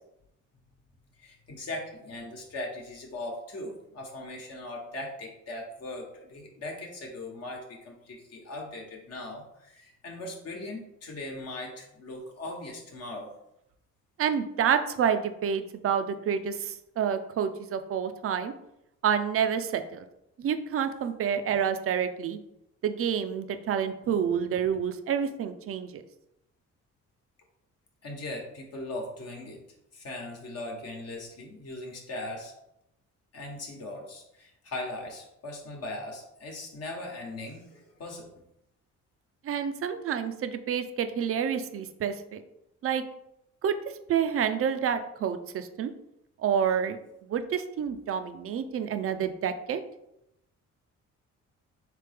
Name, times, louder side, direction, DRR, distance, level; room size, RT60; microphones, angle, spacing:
voice 1, 1.2-13.3 24.0-24.2 28.0-29.6 29.9-32.5 33.3-38.3, left 2 dB, 55° left, 0 dB, 1.1 m, -39 dB
voice 2, 14.2-18.5 19.0-20.1 20.4-22.4 22.8-26.0 39.4-42.4 42.8-43.0 43.6-43.8 44.1-45.9 46.4-47.0 47.3-49.8, right 8 dB, 50° right, 9 dB, 0.5 m, -28 dB
3.7 x 3.3 x 3.4 m, 0.82 s
cardioid pair, 90°, 30 cm